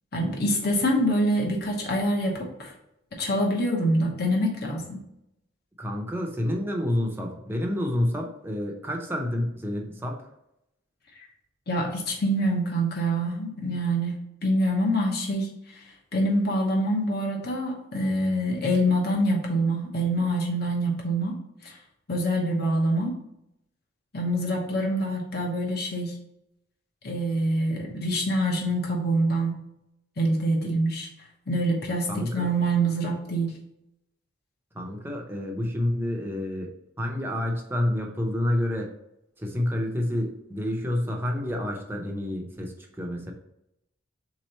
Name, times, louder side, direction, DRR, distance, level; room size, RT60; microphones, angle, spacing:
voice 1, 0.1-2.7 3.1-5.0 11.2-11.3 11.7-15.5 16.1-21.3 21.6-21.7 22.1-23.1 24.1-26.1 27.0-29.5 30.2-31.1 31.5-33.5, right 1 dB, 55° left, 0 dB, 1.0 m, -25 dB
voice 2, 5.8-10.2 32.1-32.5 34.7-36.7 37.0-38.9 39.4-43.3, left 1 dB, 10° right, 0 dB, 0.6 m, -29 dB
3.9 x 3.1 x 4.3 m, 0.82 s
head